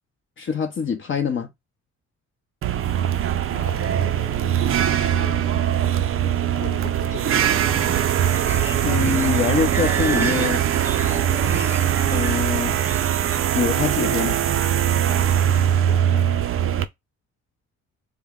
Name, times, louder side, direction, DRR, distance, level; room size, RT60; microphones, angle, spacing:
voice 1, 0.4-1.5 8.8-10.6 12.1-12.8 13.5-14.4, left 6 dB, 40° left, 0.7 m, -24 dB
sound 1, 2.6-16.8, right 10 dB, 45° right, 0.4 m, -21 dB
voice 2, 3.5-5.4 6.6-7.9 15.7-16.3, left 8 dB, 85° left, 1.0 m, -40 dB
sound 2, 7.0-13.6, right 5 dB, 5° right, 0.8 m, -30 dB
3.6 x 2.1 x 3.5 m
cardioid pair, 90°, 30 cm